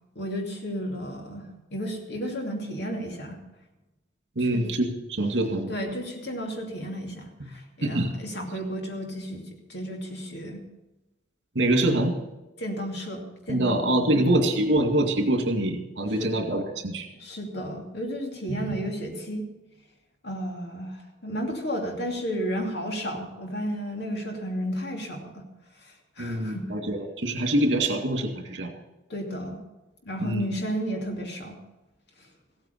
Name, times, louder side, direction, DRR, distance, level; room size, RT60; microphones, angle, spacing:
voice 1, 0.1-3.4 4.4-4.7 5.7-10.6 11.8-12.0 12.6-13.7 14.1-14.3 16.2-16.3 17.2-19.4 20.2-25.5 25.8-26.7 29.1-29.6 30.0-31.6 32.2-32.3, equal, 60° left, 2 dB, 2.7 m, -33 dB
voice 2, 4.4-5.7 7.4-7.5 7.8-8.1 11.5-12.1 13.5-17.1 18.5-18.7 26.2-28.7 30.2-30.4, right 1 dB, 65° right, 4 dB, 2.3 m, -25 dB
15.5 x 8.8 x 6.8 m, 1.0 s
head